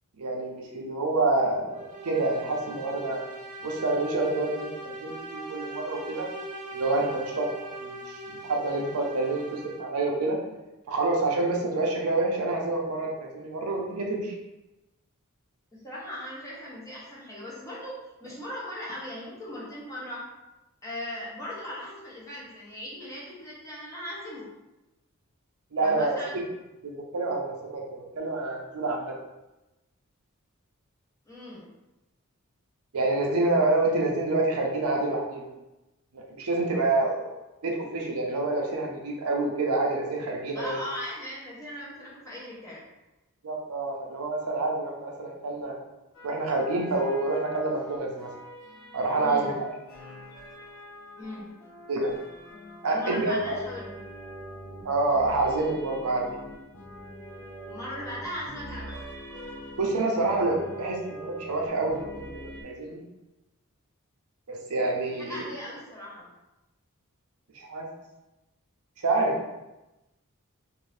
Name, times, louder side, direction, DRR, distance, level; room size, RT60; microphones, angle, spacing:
voice 1, 0.2-3.2 3.6-6.3 6.7-8.2 8.5-10.4 10.9-14.3 25.7-26.4 26.8-29.1 32.9-35.5 36.1-37.2 37.6-40.8 43.4-45.8 46.2-48.3 48.9-49.7 51.9-52.1 52.8-53.5 54.8-56.3 59.8-63.0 64.5-65.5 67.5-67.9 69.0-69.3, right 2 dB, 80° right, 0 dB, 0.6 m, -27 dB
sound 1, 1.7-10.1, right 2 dB, 35° right, 0.5 m, -40 dB
voice 2, 15.7-20.3 20.8-24.5 25.8-26.4 31.3-31.7 40.5-42.8 49.2-49.5 51.2-51.5 52.9-53.9 57.7-59.0 65.3-66.3, left 1 dB, 15° left, -6 dB, 0.9 m, -38 dB
sound 2, 46.1-62.6, equal, 60° left, 0.7 m, -44 dB
2.6 x 2.6 x 3.2 m, 0.99 s
head